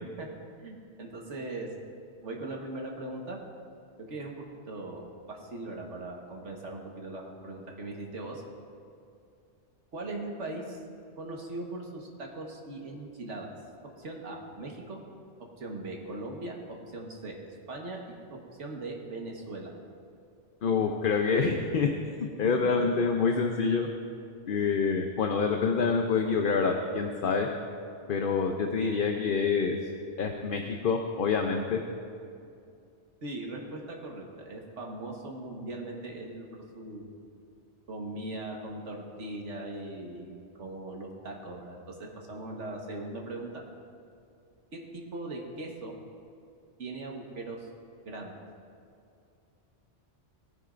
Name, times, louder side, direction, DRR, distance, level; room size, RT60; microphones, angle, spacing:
voice 1, 0.6-1.7 2.2-3.4 4.0-8.4 9.9-10.8 11.2-13.5 14.0-15.0 15.6-19.7 33.2-37.1 37.9-43.5 44.7-46.0 46.8-47.7 48.0-48.3, right 2 dB, 85° right, 0 dB, 1.7 m, -40 dB
voice 2, 20.6-21.9 22.2-23.9 24.5-27.5 28.1-29.8 30.2-31.8, left 5 dB, 55° left, 3 dB, 0.8 m, -27 dB
19.0 x 9.4 x 2.5 m, 2.4 s
omnidirectional pair, 1.2 m